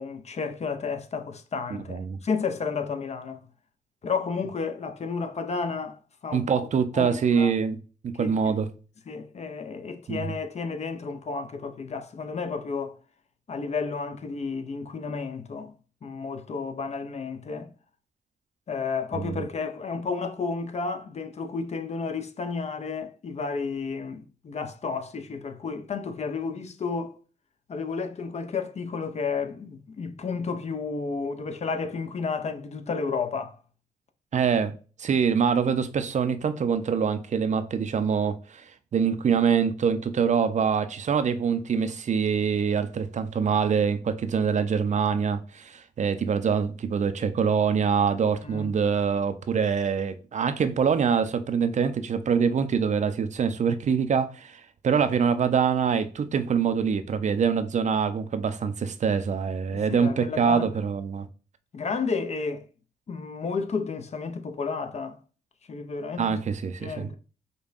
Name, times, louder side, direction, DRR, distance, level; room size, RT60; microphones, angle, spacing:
voice 1, 0.0-3.5 4.0-6.7 6.9-7.5 8.1-8.3 9.1-13.0 13.5-15.7 16.0-17.7 18.7-27.2 27.7-33.6 48.4-48.7 59.7-60.7 61.7-62.6 63.1-65.2 65.7-66.4 66.8-67.2, left 5 dB, 45° left, 0.5 m, -32 dB
voice 2, 1.9-2.2 6.3-7.8 8.0-8.7 10.1-10.2 19.1-19.4 34.3-38.6 38.9-61.3 66.2-67.1, right 6 dB, 50° right, 0.5 m, -25 dB
5.2 x 2.2 x 2.5 m
cardioid pair, 60°, 16 cm